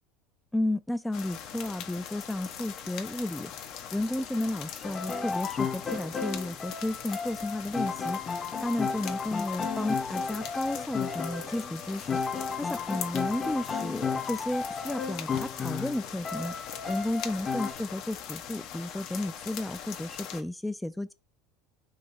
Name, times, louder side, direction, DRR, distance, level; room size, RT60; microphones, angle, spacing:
voice 1, 0.5-3.5 3.9-12.2 12.6-16.5 16.9-21.1, left 1 dB, 5° left, 0.3 m, -33 dB
sound 1, 1.1-20.4, left 9 dB, 60° left, 0.7 m, -41 dB
sound 2, 4.8-17.7, left 5 dB, 25° left, 0.7 m, -33 dB
4.0 x 2.8 x 4.8 m
hypercardioid pair, 90°, 0 cm